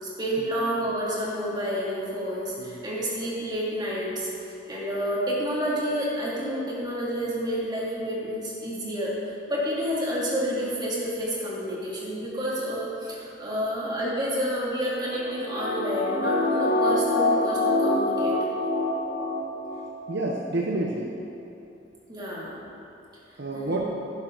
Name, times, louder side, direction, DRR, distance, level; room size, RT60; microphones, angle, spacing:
voice 1, 0.0-4.3 4.7-18.4 22.1-22.6 23.5-23.9, equal, 25° right, -6 dB, 2.5 m, -29 dB
sound 1, 15.1-19.9 20.2-20.3, left 2 dB, 65° left, 1.1 m, -25 dB
voice 2, 20.1-21.1 23.4-23.9, right 2 dB, 65° right, -1 dB, 0.9 m, -29 dB
11.5 x 10.5 x 3.9 m, 2.8 s
head